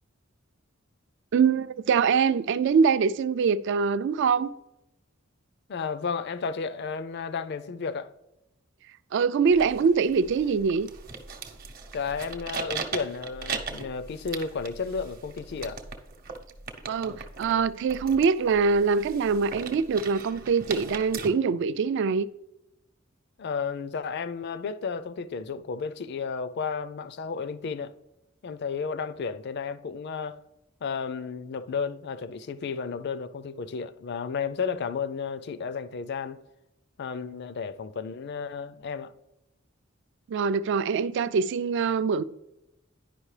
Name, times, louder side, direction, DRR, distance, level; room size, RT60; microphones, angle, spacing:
voice 1, 1.3-4.5 9.1-10.9 16.9-22.3 40.3-42.2, right 5 dB, 60° right, 0.3 m, -24 dB
voice 2, 5.7-8.1 11.9-15.8 23.4-27.9 28.4-30.4 30.8-36.4 37.0-39.1, left 5 dB, 55° left, 0.4 m, -33 dB
sound 1, 9.5-21.3, right 5 dB, 45° right, 0.8 m, -39 dB
10.0 x 5.2 x 3.2 m
head